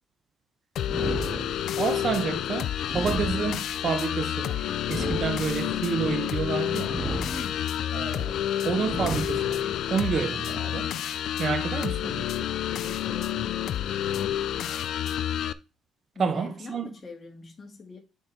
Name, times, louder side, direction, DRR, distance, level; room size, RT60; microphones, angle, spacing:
sound 1, 0.8-15.5, left 10 dB, 75° left, 0.4 m, -29 dB
sound 2, 0.8-1.9 2.8-3.9 4.8-5.9 6.8-7.9 8.8-9.9, equal, ahead, 1.9 m, -34 dB
voice 1, 1.0-1.5 1.8-7.0 7.9-8.3 8.6-10.9 11.4-12.3 16.2-16.9, right 5 dB, 50° right, 1.0 m, -29 dB
voice 2, 7.2-7.8 12.7-13.7 16.1-18.0, left 3 dB, 35° left, 2.0 m, -43 dB
7.0 x 4.7 x 4.0 m
cardioid pair, 90°, 0 cm